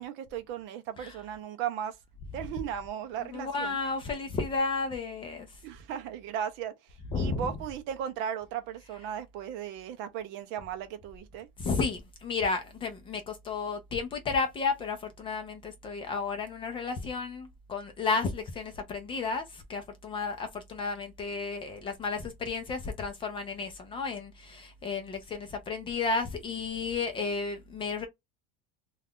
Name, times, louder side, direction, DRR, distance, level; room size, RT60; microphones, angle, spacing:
voice 1, 0.0-2.0 2.3-3.8 5.6-6.7 7.2-11.5, right 9 dB, 40° right, 0.5 m, -36 dB
voice 2, 3.3-5.5 7.1-7.5 11.6-28.1, left 4 dB, 20° left, 0.5 m, -32 dB
2.4 x 2.3 x 3.4 m
supercardioid pair, 165°, 29 cm